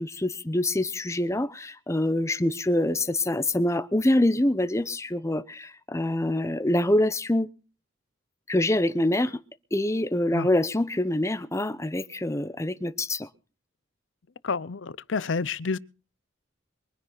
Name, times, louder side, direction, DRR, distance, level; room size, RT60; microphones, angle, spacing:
voice 1, 0.0-7.5 8.5-9.4 9.7-13.3, left 1 dB, 15° left, 0.8 m, -25 dB
voice 2, 14.4-15.8, left 4 dB, 65° left, 0.6 m, -29 dB
23.0 x 10.0 x 4.0 m
head